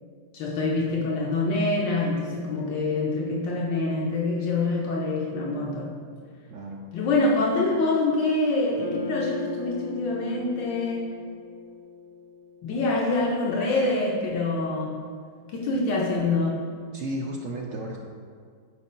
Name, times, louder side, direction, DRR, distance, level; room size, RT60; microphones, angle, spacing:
voice 1, 0.3-6.0 6.9-11.2 12.6-15.0 15.5-16.6, left 2 dB, 80° left, -3 dB, 1.5 m, -25 dB
voice 2, 6.5-6.9 16.9-18.0, right 1 dB, 75° right, -1 dB, 0.7 m, -33 dB
sound 1, 8.8-13.1, left 6 dB, 25° left, 1.2 m, -38 dB
12.5 x 5.1 x 2.2 m, 2.1 s
omnidirectional pair, 2.0 m